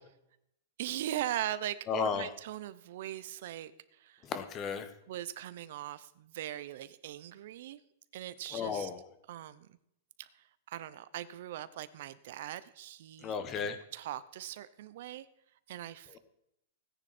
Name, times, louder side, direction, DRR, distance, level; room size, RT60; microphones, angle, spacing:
voice 1, 0.8-4.2 5.1-7.8 8.1-8.9 9.3-9.7 10.2-13.4 13.9-15.3 15.7-16.2, right 12 dB, 60° right, 16 dB, 0.7 m, -40 dB
voice 2, 1.9-2.3 4.2-4.9 8.5-9.1 13.2-13.8, left 6 dB, 25° left, 10 dB, 1.3 m, -34 dB
17.5 x 10.0 x 4.3 m, 0.78 s
supercardioid pair, 165°, 0 cm